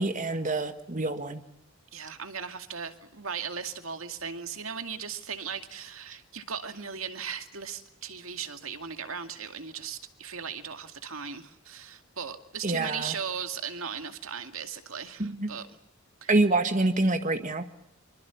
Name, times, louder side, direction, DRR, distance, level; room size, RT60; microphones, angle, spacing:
voice 1, 0.0-1.4 12.6-13.1 15.2-15.5 16.3-17.7, right 2 dB, 40° right, 7 dB, 1.7 m, -26 dB
voice 2, 1.9-15.7 16.2-16.3, right 7 dB, 80° right, 7 dB, 2.3 m, -37 dB
26.0 x 24.0 x 7.1 m, 0.80 s
head